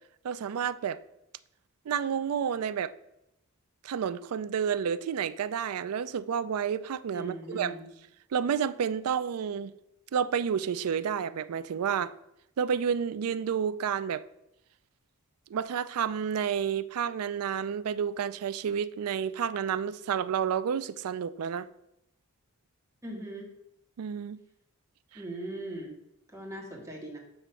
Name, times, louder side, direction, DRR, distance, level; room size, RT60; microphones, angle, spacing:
voice 1, 0.2-1.0 1.9-2.9 3.8-7.7 8.3-9.7 10.1-12.1 12.6-14.2 15.5-21.7 24.0-24.4, right 7 dB, 75° right, 0.4 m, -30 dB
voice 2, 7.1-7.8 23.0-23.5 25.1-25.9 26.3-27.2, right 1 dB, 15° right, 1.5 m, -39 dB
7.7 x 3.0 x 5.6 m
head